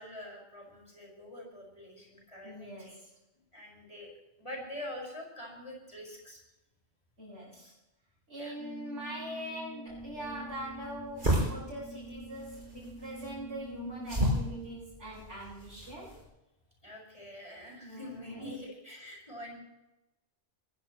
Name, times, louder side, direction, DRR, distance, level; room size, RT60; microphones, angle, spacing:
voice 1, 0.0-3.0 3.5-4.1 4.4-6.4 8.3-8.5 16.8-19.6, left 1 dB, 25° left, -2 dB, 5.6 m, -45 dB
voice 2, 2.4-3.1 7.2-7.7 8.3-16.1 17.7-18.5, equal, 80° right, -11 dB, 8.3 m, -42 dB
Brass instrument, 8.6-15.0, right 2 dB, 5° left, 4.6 m, -47 dB
sound 1, 9.9-16.2, equal, 45° right, 6.2 m, -34 dB
22.0 x 16.5 x 3.1 m, 0.96 s
omnidirectional pair, 1.2 m